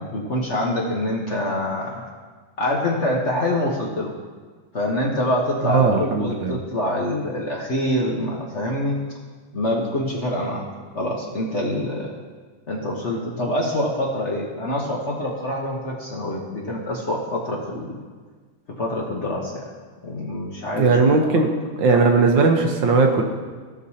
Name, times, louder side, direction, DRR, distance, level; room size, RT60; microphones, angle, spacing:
voice 1, 0.0-2.1 2.6-4.1 4.7-9.0 9.5-10.7 10.9-12.2 12.7-18.0 18.8-19.7 20.0-21.3, left 1 dB, 45° left, -2 dB, 1.1 m, -25 dB
voice 2, 5.6-6.6 20.8-21.5 21.8-23.2, right 4 dB, 70° right, 2 dB, 1.6 m, -18 dB
16.0 x 6.4 x 2.8 m, 1.5 s
omnidirectional pair, 2.2 m